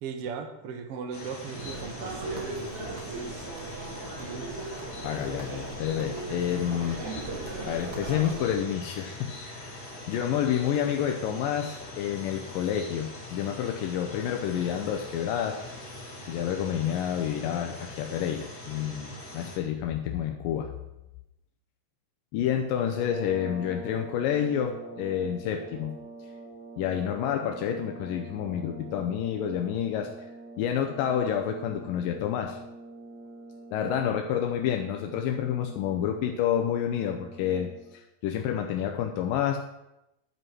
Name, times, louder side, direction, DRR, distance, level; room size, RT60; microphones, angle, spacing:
voice 1, 0.0-3.5 4.2-4.5, right 6 dB, 75° right, 4 dB, 1.3 m, -38 dB
sound 1, 1.1-19.6, left 1 dB, 45° left, 3.6 m, -42 dB
sound 2, 1.6-8.5, right 2 dB, 45° right, 1.4 m, -38 dB
voice 2, 5.0-7.0 7.6-9.8 10.1-15.6 16.3-20.7 22.3-26.0 26.8-30.1 30.6-32.6 33.7-39.6, left 9 dB, 85° left, 4 dB, 2.2 m, -29 dB
sound 3, 22.8-38.0, right 2 dB, 25° right, 3.8 m, -45 dB
11.0 x 5.3 x 6.1 m, 0.90 s
omnidirectional pair, 4.1 m